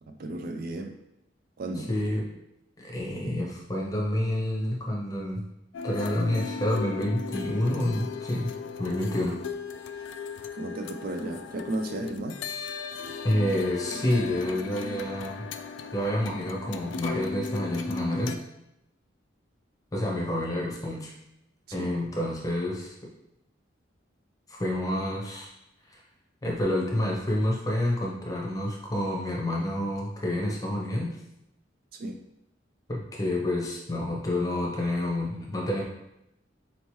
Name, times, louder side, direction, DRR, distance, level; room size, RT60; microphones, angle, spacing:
voice 1, 0.0-1.0 1.6-1.9 10.5-12.4 21.7-21.9 31.9-32.2, right 1 dB, 50° right, 5 dB, 0.3 m, -34 dB
voice 2, 1.8-2.3 2.8-5.4 5.8-9.4 13.2-15.4 15.9-18.4 19.9-21.1 21.7-23.1 24.5-25.5 25.9-26.0 26.4-31.2 32.9-35.8, left 1 dB, 20° left, -2 dB, 0.8 m, -28 dB
sound 1, 5.7-18.4, left 4 dB, 70° left, 0.3 m, -37 dB
4.2 x 2.9 x 3.1 m, 0.84 s
head